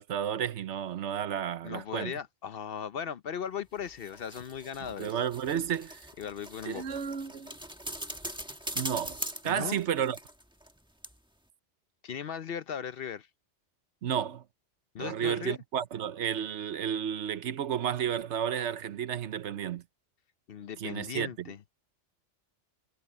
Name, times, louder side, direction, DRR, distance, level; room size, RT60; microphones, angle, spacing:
voice 1, 0.0-2.1 5.0-6.0 6.6-7.6 8.8-10.2 14.0-14.4 15.0-19.8 20.8-21.3, right 9 dB, 75° right, 1.1 m, -32 dB
voice 2, 1.6-5.2 6.2-7.0 9.4-9.8 12.0-13.3 14.9-15.6 20.5-21.6, left 8 dB, 60° left, 0.8 m, -38 dB
sound 1, 3.8-10.8 11.0-11.1, equal, 5° right, 1.4 m, -41 dB
omnidirectional pair, 1.2 m